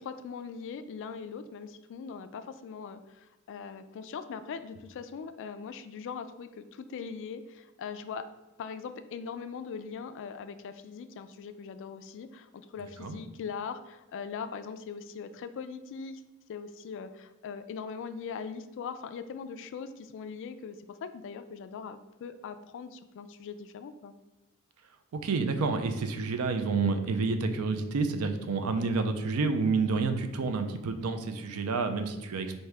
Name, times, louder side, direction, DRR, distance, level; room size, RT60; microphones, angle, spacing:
voice 1, 0.0-8.3 8.6-16.2 16.5-24.1, left 6 dB, 60° left, 11 dB, 0.3 m, -41 dB
voice 2, 25.1-32.6, right 4 dB, 85° right, 7 dB, 0.4 m, -29 dB
4.7 x 2.6 x 3.3 m, 1.0 s
head